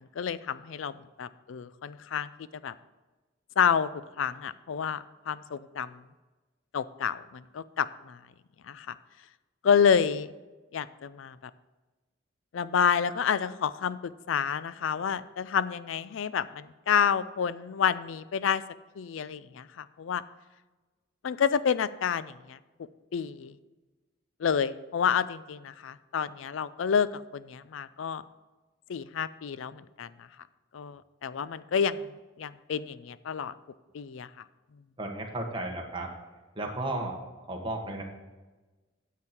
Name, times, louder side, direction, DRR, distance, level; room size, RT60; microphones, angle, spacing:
voice 1, 0.0-2.3 2.6-2.7 3.6-6.0 6.7-8.2 8.7-9.0 9.6-10.3 10.7-11.5 12.5-18.6 19.0-20.2 21.2-22.6 23.1-23.6 24.4-28.2 28.9-30.3 30.7-33.5 33.9-34.3, left 7 dB, 75° left, 16 dB, 0.4 m, -29 dB
voice 2, 35.0-36.1 36.5-37.2 37.5-38.0, right 2 dB, 25° right, 0 dB, 1.4 m, -34 dB
9.7 x 7.5 x 4.4 m, 1.2 s
head